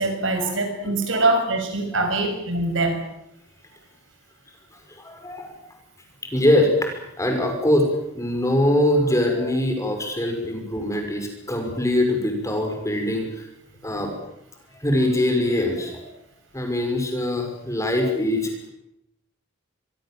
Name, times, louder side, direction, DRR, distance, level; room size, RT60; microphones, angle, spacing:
voice 1, 0.0-3.0, right 2 dB, 75° right, 5 dB, 6.6 m, -23 dB
voice 2, 4.9-5.6 6.3-7.9 8.1-13.5 13.8-14.1 14.7-16.0 16.5-18.7, left 1 dB, 15° left, 3 dB, 5.9 m, -23 dB
25.5 x 22.5 x 7.8 m, 0.82 s
head